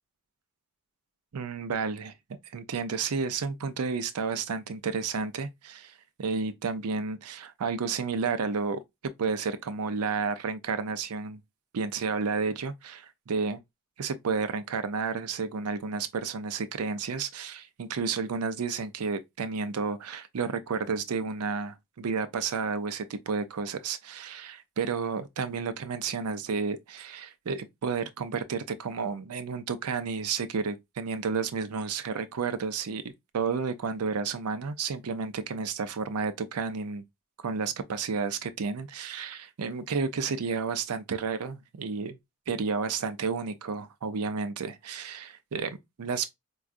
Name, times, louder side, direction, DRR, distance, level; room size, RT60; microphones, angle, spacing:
voice 1, 1.3-2.1 2.5-5.9 6.2-8.8 9.2-11.4 11.7-13.6 14.0-37.0 37.4-42.2 42.5-46.3, right 5 dB, 90° right, 0.5 m, -31 dB
4.6 x 2.3 x 2.5 m
head